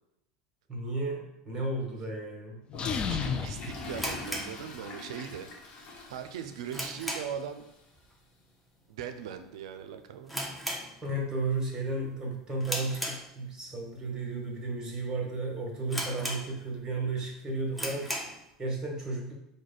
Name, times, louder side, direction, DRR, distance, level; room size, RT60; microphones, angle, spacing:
voice 1, 0.7-2.6 11.0-18.3 18.6-19.3, right 2 dB, 20° right, -1 dB, 1.4 m, -33 dB
Toilet flush, 2.7-7.8, left 2 dB, 50° left, 1.1 m, -45 dB
sound 1, 2.7-4.8, left 6 dB, 30° left, 0.4 m, -34 dB
voice 2, 3.1-5.5 6.1-7.6 8.9-10.3, right 8 dB, 75° right, 8 dB, 0.4 m, -39 dB
sound 2, 3.9-5.3 5.6-5.7 6.2-7.5 7.8-8.1 8.4-8.5 9.2-9.5 9.7-9.8 10.2-11.4 11.8-12.1 12.6-13.7 14.3-14.4 15.0-15.1 15.3-15.4 15.9-16.9 17.2-17.3 17.7-18.4, equal, ahead, 0.8 m, -36 dB
4.7 x 2.2 x 3.9 m, 0.85 s
hypercardioid pair, 90°, 3 cm